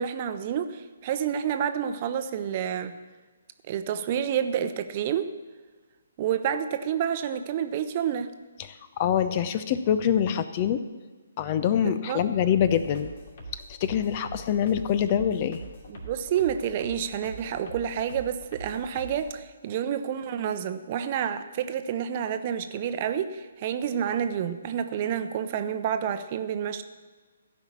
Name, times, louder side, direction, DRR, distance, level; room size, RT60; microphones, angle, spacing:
voice 1, 0.0-3.0 3.7-5.3 6.2-8.3 11.8-12.2 15.9-26.8, right 9 dB, 35° right, 10 dB, 0.8 m, -29 dB
voice 2, 8.6-10.8 11.4-13.1 13.7-15.6, left 9 dB, 35° left, 12 dB, 0.7 m, -25 dB
sound 1, 12.5-19.3, right 2 dB, 50° left, 2.7 m, -43 dB
15.5 x 5.7 x 8.5 m, 1.3 s
figure-of-eight pair, 135°, 0 cm